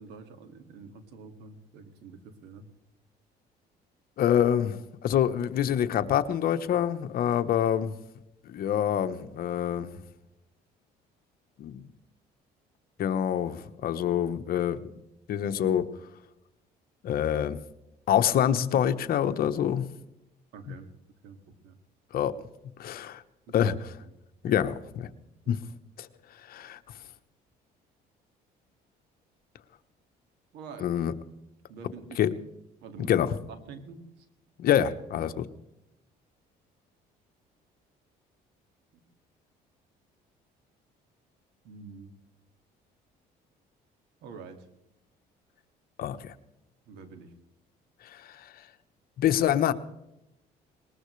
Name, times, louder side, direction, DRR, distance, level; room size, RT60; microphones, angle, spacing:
voice 1, 0.0-2.7 20.5-20.9 21.2-21.8 23.5-23.7 24.5-24.6 25.4-25.5 30.5-30.9 31.7-32.2 32.8-34.3 35.1-35.3 38.9-39.0 41.6-42.1 44.2-44.7 46.9-47.3, right 5 dB, 85° right, 7 dB, 2.2 m, -46 dB
voice 2, 4.2-7.9 8.5-10.0 11.6-11.8 13.0-14.9 15.3-15.9 17.0-17.6 18.1-19.9 22.1-22.3 22.8-23.2 23.5-23.7 24.4-25.1 25.5-25.6 26.0-26.1 26.5-26.8 30.8-31.1 32.2-32.3 33.0-33.3 34.6-35.4 46.0-46.3 48.1-48.4 49.2-49.7, left 10 dB, 60° left, 10 dB, 1.1 m, -26 dB
21.0 x 19.5 x 3.3 m, 0.86 s
cardioid pair, 110°, 17 cm